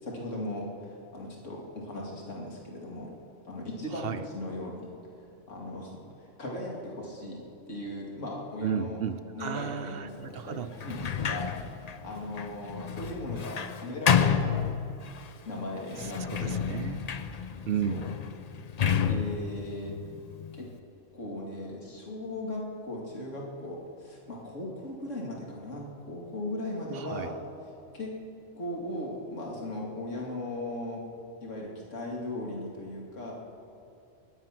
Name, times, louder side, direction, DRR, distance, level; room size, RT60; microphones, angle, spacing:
voice 1, 0.0-3.1 3.5-4.9 5.5-9.0 9.3-14.6 15.2-16.6 17.8-18.0 19.0-20.0 20.5-20.7 21.1-27.4 27.9-28.2 28.5-31.0 31.4-33.3, left 1 dB, 75° left, -2 dB, 2.7 m, -38 dB
voice 2, 3.9-4.2 8.6-10.7 16.0-17.0 17.7-18.0 26.9-27.3, right 8 dB, 55° right, 10 dB, 0.8 m, -34 dB
Sliding door, 10.8-15.3 15.9-20.8, left 7 dB, 45° left, 0.5 m, -30 dB
22.5 x 10.5 x 5.9 m, 2.6 s
omnidirectional pair, 1.3 m